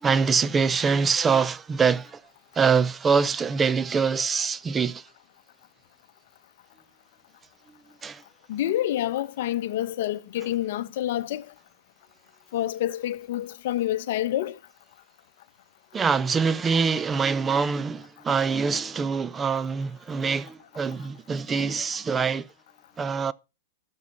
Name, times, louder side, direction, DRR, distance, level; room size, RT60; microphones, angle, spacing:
voice 1, 0.0-2.2 2.5-5.1 8.0-8.2 15.9-22.5 23.0-23.3, right 5 dB, 15° right, 0.5 m, -24 dB
voice 2, 8.5-11.4 12.5-14.6, left 13 dB, 60° left, 0.9 m, -28 dB
13.0 x 5.6 x 5.4 m
hypercardioid pair, 145°, 0 cm